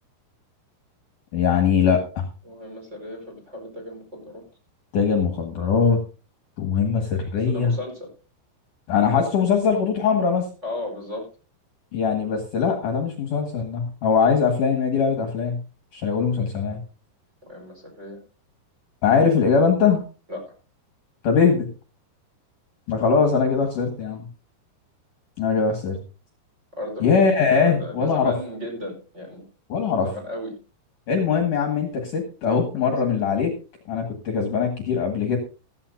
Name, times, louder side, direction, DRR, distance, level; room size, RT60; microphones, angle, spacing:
voice 1, 1.3-2.3 4.9-6.0 6.6-7.7 8.9-10.5 11.9-15.6 15.9-16.8 19.0-20.0 21.2-21.7 22.9-24.3 25.4-26.0 27.0-28.3 29.7-30.1 31.1-33.5 33.9-35.4, left 6 dB, 55° left, 3 dB, 2.8 m, -21 dB
voice 2, 2.4-4.4 7.5-8.1 10.6-11.3 17.4-18.2 20.3-20.5 26.7-29.5 30.0-30.5 32.7-33.1, left 1 dB, 15° right, 2 dB, 4.7 m, -35 dB
14.5 x 14.5 x 2.7 m, 0.34 s
omnidirectional pair, 5.0 m